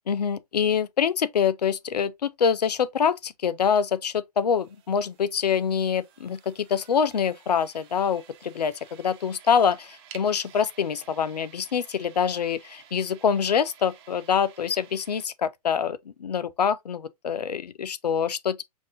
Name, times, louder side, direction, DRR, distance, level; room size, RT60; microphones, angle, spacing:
voice 1, 0.1-18.6, left 7 dB, 80° left, 0.5 m, -25 dB
sound 1, 4.5-15.3, right 9 dB, 40° right, 0.9 m, -53 dB
5.3 x 2.6 x 2.5 m
hypercardioid pair, 120°, 20 cm